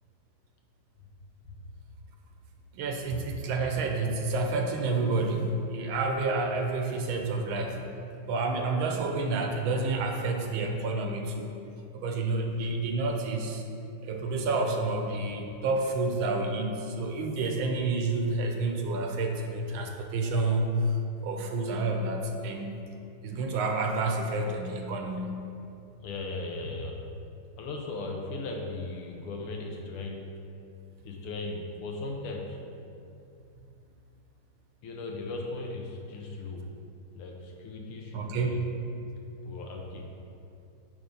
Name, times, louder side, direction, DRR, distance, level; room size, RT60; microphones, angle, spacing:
voice 1, 2.7-7.8 8.3-11.5 11.9-13.6 14.0-22.7 23.2-25.4 38.1-38.7, right 3 dB, 75° right, 3 dB, 1.5 m, -29 dB
voice 2, 26.0-27.0 27.6-30.3 31.1-32.6 34.8-36.6 37.1-38.7 39.5-40.1, left 2 dB, 80° left, 1 dB, 1.8 m, -37 dB
8.9 x 3.5 x 5.3 m, 2.6 s
omnidirectional pair, 2.4 m